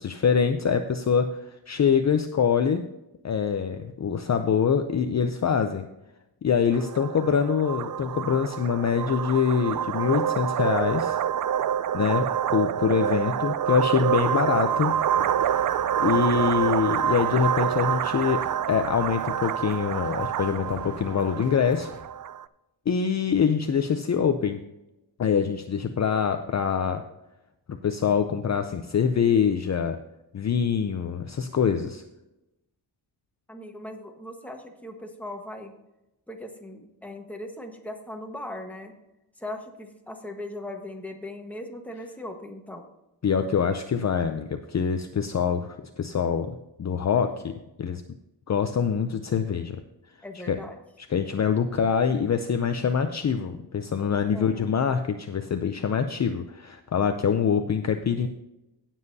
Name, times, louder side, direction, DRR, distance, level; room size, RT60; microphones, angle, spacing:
voice 1, 0.0-2.8 3.2-5.9 6.4-11.2 11.9-15.0 16.0-18.4 18.7-21.9 22.9-24.6 25.2-27.0 27.7-30.0 30.3-32.0 43.2-47.5 47.8-48.0 48.5-49.8 50.5-50.6 51.0-58.3, left 7 dB, 40° left, 7 dB, 0.6 m, -24 dB
sound 1, 6.7-22.4, right 9 dB, 50° right, 0.4 m, -27 dB
sound 2, 14.6-22.0, right 2 dB, 30° right, 3.2 m, -46 dB
voice 2, 33.5-35.7 36.3-38.9 39.4-42.8 50.2-50.7 54.3-54.7, left 1 dB, 5° left, 2 dB, 1.4 m, -39 dB
17.5 x 7.4 x 2.8 m, 0.94 s
wide cardioid pair, 140°, 43 cm